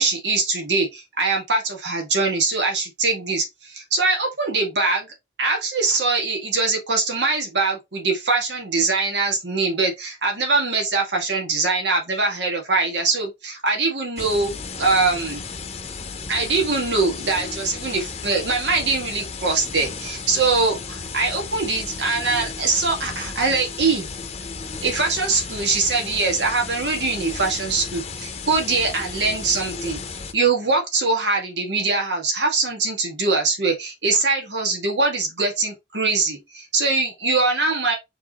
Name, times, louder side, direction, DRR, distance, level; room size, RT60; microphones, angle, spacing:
voice 1, 0.0-5.1 5.4-15.4 16.3-24.1 24.8-30.0 30.3-37.9, right 3 dB, 85° right, 1.9 m, -22 dB
sound 1, 14.2-30.3, left 4 dB, 35° left, 0.7 m, -34 dB
4.7 x 3.6 x 3.0 m
head